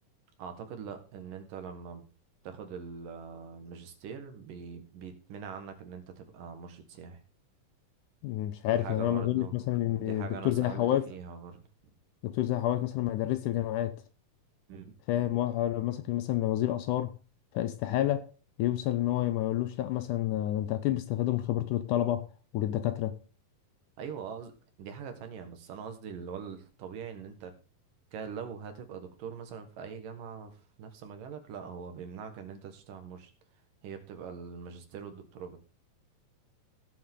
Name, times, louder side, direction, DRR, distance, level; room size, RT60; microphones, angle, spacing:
voice 1, 0.4-2.0 2.4-7.2 8.7-9.5 10.0-11.7 14.7-14.9 24.0-24.5 24.8-27.5 28.1-33.3 33.8-35.6, right 6 dB, 70° right, 3.2 m, -43 dB
voice 2, 8.2-11.1 12.2-14.0 15.1-17.1 17.5-18.3 18.6-22.3 22.5-23.2, left 13 dB, 75° left, 2.0 m, -29 dB
16.5 x 7.5 x 3.8 m
omnidirectional pair, 4.0 m